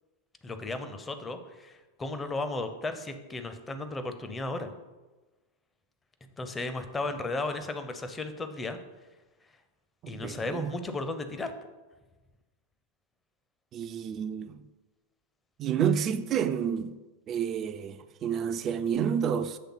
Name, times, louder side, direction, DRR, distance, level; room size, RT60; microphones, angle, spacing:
voice 1, 0.4-4.7 6.4-8.8 10.1-11.5, left 2 dB, 15° left, 0.6 m, -35 dB
voice 2, 10.0-10.7 13.7-14.7 15.6-17.0 17.3-19.6, right 8 dB, 30° right, 0.4 m, -30 dB
7.6 x 3.5 x 5.5 m
figure-of-eight pair, 90°, 0 cm